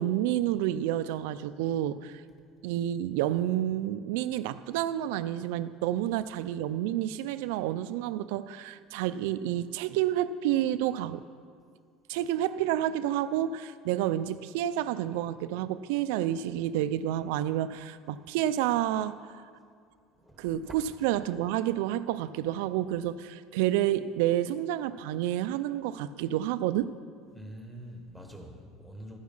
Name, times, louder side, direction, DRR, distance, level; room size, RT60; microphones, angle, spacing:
voice 1, 0.0-2.2 2.6-11.2 12.1-19.5 20.4-26.9, right 12 dB, 85° right, 0.4 m, -29 dB
voice 2, 20.2-20.7 27.3-29.2, equal, 5° left, 1.3 m, -45 dB
13.5 x 9.5 x 5.5 m
cardioid pair, 170°, 0 cm